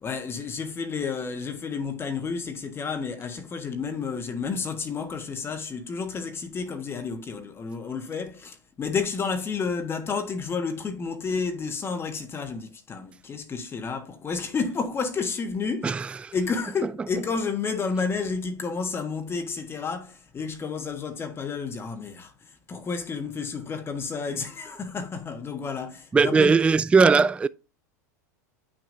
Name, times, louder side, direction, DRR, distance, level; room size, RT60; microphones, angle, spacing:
voice 1, 0.0-16.0 16.3-26.6, left 5 dB, 25° left, 1.4 m, -31 dB
voice 2, 15.8-16.3 26.1-27.5, right 5 dB, 10° right, 0.3 m, -19 dB
8.3 x 6.2 x 2.7 m
hypercardioid pair, 100°, 9 cm